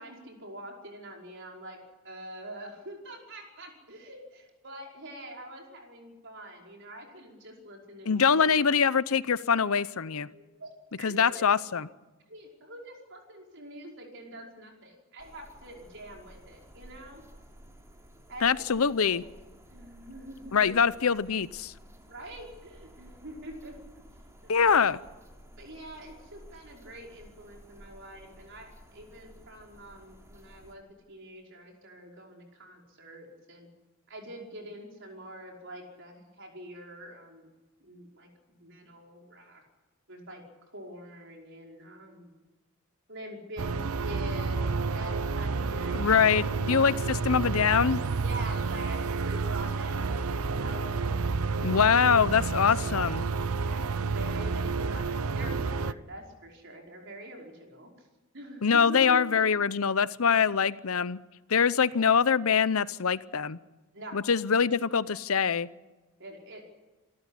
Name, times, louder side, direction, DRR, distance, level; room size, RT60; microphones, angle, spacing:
voice 1, 0.0-1.8 2.0-8.5 10.3-11.5 12.3-17.2 18.3-18.5 18.9-19.2 19.7-20.7 22.1-24.0 24.4-24.9 25.6-33.7 34.1-37.5 37.8-39.6 40.1-40.4 40.7-42.3 43.1-43.7 44.0-46.5 48.2-52.1 53.5-58.1 58.3-59.4 63.9-64.2 66.2-66.6, right 1 dB, 55° right, 5.3 m, -45 dB
voice 2, 8.1-10.3 11.0-11.9 18.4-19.2 20.5-21.7 24.5-25.0 45.9-48.0 51.6-53.2 58.6-61.2 61.5-63.6 64.1-65.7, left 6 dB, 75° left, 0.7 m, -24 dB
sound 1, 15.2-30.7, equal, 15° right, 3.1 m, -53 dB
sound 2, 43.6-55.9, right 4 dB, 80° right, 0.7 m, -30 dB
27.5 x 13.5 x 9.9 m
head